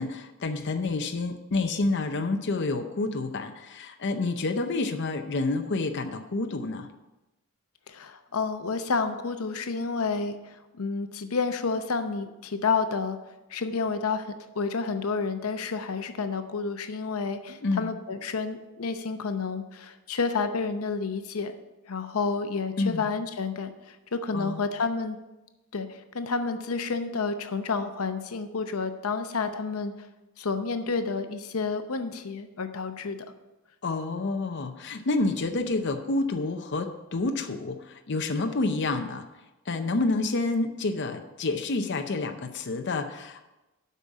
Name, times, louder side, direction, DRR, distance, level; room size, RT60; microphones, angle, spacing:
voice 1, 0.0-6.9 17.6-17.9 22.8-23.0 24.3-24.6 33.8-39.2 39.7-43.5, left 3 dB, 55° left, 5 dB, 0.6 m, -29 dB
voice 2, 7.9-13.2 13.5-21.5 21.9-25.2 25.7-29.9 30.4-33.2, left 4 dB, 90° left, 8 dB, 0.7 m, -30 dB
8.3 x 5.5 x 7.3 m, 1.0 s
head